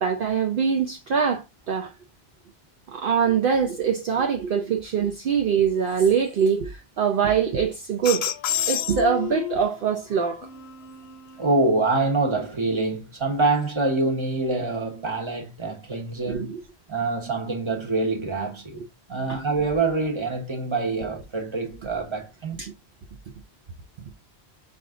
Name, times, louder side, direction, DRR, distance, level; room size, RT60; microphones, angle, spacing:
voice 1, 0.0-1.9 2.9-8.3 8.7-10.5 16.3-16.6 19.3-19.4 22.6-22.7, right 7 dB, 60° right, 0.8 m, -23 dB
sound 1, 8.0-9.8 10.4-11.5, left 11 dB, 75° left, 0.8 m, -30 dB
voice 2, 11.4-16.4 16.9-18.8 19.1-22.6, right 3 dB, 30° right, 1.2 m, -25 dB
5.4 x 2.6 x 3.6 m
omnidirectional pair, 1.1 m